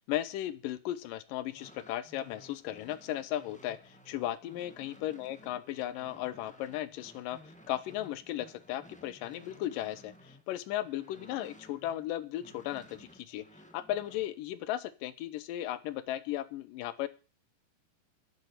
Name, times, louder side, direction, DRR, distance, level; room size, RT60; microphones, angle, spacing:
voice 1, 0.1-7.4 7.7-13.4 13.7-17.1, left 13 dB, 90° left, 16 dB, 2.5 m, -36 dB
sound 1, 1.4-12.1 12.4-14.3, equal, 5° left, 0.6 m, -56 dB
10.5 x 8.2 x 8.3 m, 0.36 s
omnidirectional pair, 3.9 m